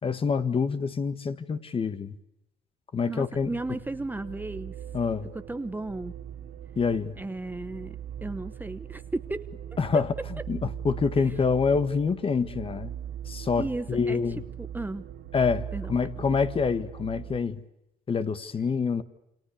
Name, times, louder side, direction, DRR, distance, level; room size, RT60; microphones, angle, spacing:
voice 1, 0.0-2.2 2.9-3.8 4.9-5.3 6.8-7.2 9.8-12.9 13.3-14.4 15.3-17.6 18.1-19.0, left 5 dB, 35° left, 12 dB, 1.9 m, -27 dB
voice 2, 3.1-4.7 5.3-6.1 7.2-9.8 13.6-14.2 14.6-15.0 15.7-15.9, right 2 dB, 10° right, 11 dB, 1.0 m, -35 dB
sound 1, 3.3-17.4, right 9 dB, 75° right, 3.1 m, -40 dB
29.0 x 26.5 x 6.8 m, 0.86 s
cardioid pair, 110°, 17 cm